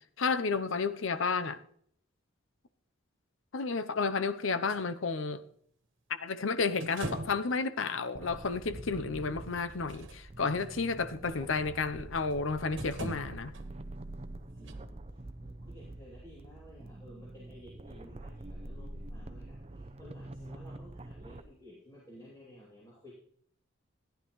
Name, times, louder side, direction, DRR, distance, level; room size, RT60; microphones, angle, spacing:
voice 1, 0.2-1.6 3.5-5.4 6.2-13.5, left 4 dB, 80° left, 0.7 m, -31 dB
sound 1, 4.7-4.8 6.8-7.5 8.3-8.4 9.7-10.7 12.1-12.4 12.8-13.6 14.7-14.8, right 1 dB, 70° right, 1.4 m, -40 dB
sound 2, 8.1-21.4, right 1 dB, 30° right, 0.6 m, -46 dB
voice 2, 14.0-23.1, equal, 20° left, 2.8 m, -54 dB
14.5 x 10.5 x 3.1 m
head